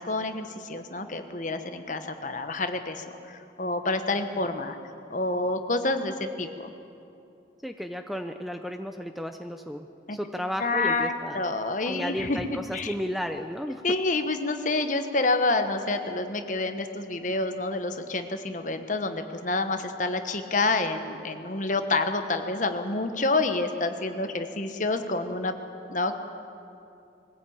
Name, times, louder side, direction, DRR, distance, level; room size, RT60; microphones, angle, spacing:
voice 1, 0.0-4.8 5.1-6.7 10.1-10.2 10.6-12.4 12.7-12.9 13.8-25.6 25.9-26.2, left 2 dB, 40° left, 8 dB, 1.2 m, -28 dB
voice 2, 7.6-11.4 11.8-13.8, equal, ahead, 6 dB, 0.5 m, -34 dB
22.0 x 15.5 x 8.7 m, 2.7 s
head